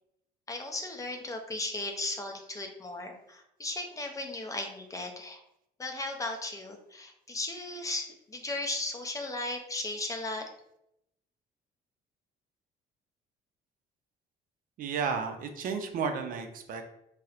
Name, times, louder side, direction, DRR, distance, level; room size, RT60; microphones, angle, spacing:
voice 1, 0.5-5.4 5.8-10.5, left 2 dB, 20° left, 4 dB, 0.4 m, -36 dB
voice 2, 14.8-16.8, right 5 dB, 55° right, 5 dB, 0.5 m, -33 dB
4.1 x 2.0 x 2.4 m, 0.81 s
cardioid pair, 110°, 17 cm